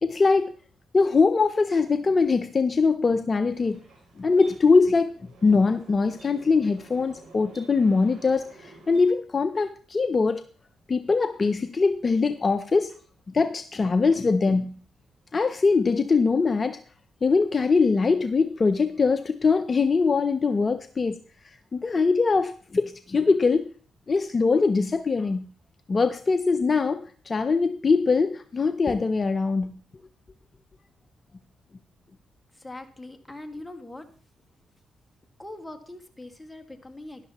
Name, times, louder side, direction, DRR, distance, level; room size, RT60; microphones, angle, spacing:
voice 1, 0.0-0.5 0.9-3.8 4.2-5.1 5.4-10.4 10.9-13.0 13.3-14.8 15.3-16.8 17.2-21.2 21.7-23.7 24.1-25.5 25.9-29.7, left 4 dB, 40° left, 0.6 m, -22 dB
sound 1, 3.5-9.1, right 3 dB, 75° right, 4.7 m, -51 dB
voice 2, 32.5-34.1 35.4-37.3, left 2 dB, 10° left, 1.9 m, -41 dB
12.5 x 11.5 x 3.0 m
supercardioid pair, 55°, 0 cm